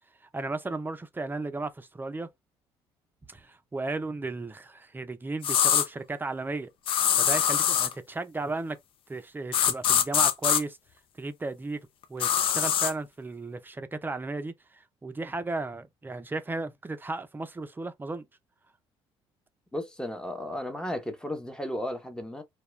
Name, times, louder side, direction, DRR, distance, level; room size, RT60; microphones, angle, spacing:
voice 1, 0.2-2.3 3.3-6.7 7.2-8.8 9.1-10.8 11.2-18.3, right 3 dB, 20° right, 0.5 m, -35 dB
sound 1, 5.4-5.9 6.9-7.9 9.5-10.6 12.2-12.9, left 9 dB, 60° left, 0.4 m, -23 dB
voice 2, 19.7-22.4, left 1 dB, 5° left, 0.8 m, -34 dB
2.3 x 2.2 x 3.0 m
supercardioid pair, 75°, 10 cm